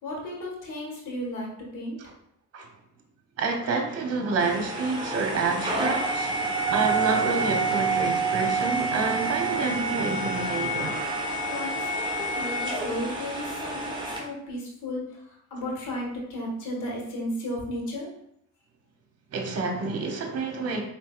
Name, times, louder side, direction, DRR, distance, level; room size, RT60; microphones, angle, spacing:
voice 1, 0.0-2.0 11.5-18.1, left 1 dB, 80° left, -2 dB, 1.5 m, -34 dB
voice 2, 3.4-11.0 19.3-20.8, right 4 dB, 55° right, 3 dB, 1.0 m, -28 dB
sound 1, 4.4-14.2, right 3 dB, 15° right, 1.1 m, -28 dB
4.5 x 3.7 x 2.4 m, 0.75 s
cardioid pair, 90°, 30 cm